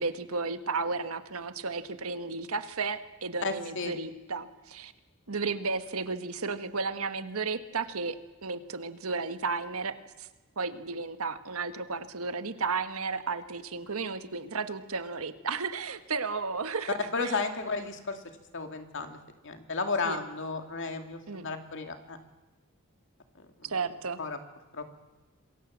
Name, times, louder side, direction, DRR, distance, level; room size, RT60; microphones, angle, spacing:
voice 1, 0.0-4.9 5.3-10.3 10.6-17.4 20.0-20.2 21.3-21.5 23.6-24.2, right 4 dB, 80° right, 10 dB, 1.5 m, -33 dB
voice 2, 3.4-3.9 17.1-18.2 18.5-19.2 19.4-22.2 23.4-23.7 24.2-24.4 24.7-25.0, left 4 dB, 60° left, 6 dB, 2.5 m, -33 dB
26.5 x 22.5 x 7.4 m, 1.1 s
head